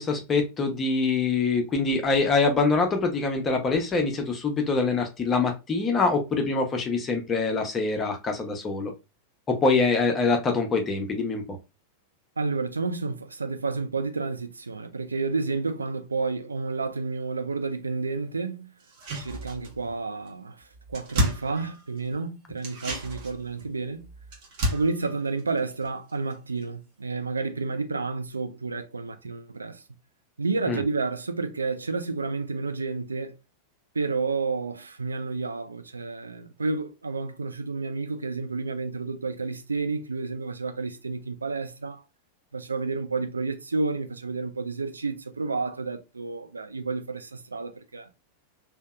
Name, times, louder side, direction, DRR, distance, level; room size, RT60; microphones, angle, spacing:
voice 1, 0.0-8.9 9.5-11.6 30.7-30.8, left 4 dB, 20° left, 0.7 m, -24 dB
voice 2, 12.4-18.7 19.2-24.0 24.7-29.8 30.4-33.4 33.9-42.0 42.5-48.1, right 4 dB, 75° right, 0.3 m, -30 dB
sound 1, 18.8-20.0 20.3-20.4 20.6-22.1 22.6-26.3 26.6-26.7, equal, 45° right, 0.9 m, -32 dB
2.7 x 2.1 x 2.3 m
figure-of-eight pair, 90°, 0 cm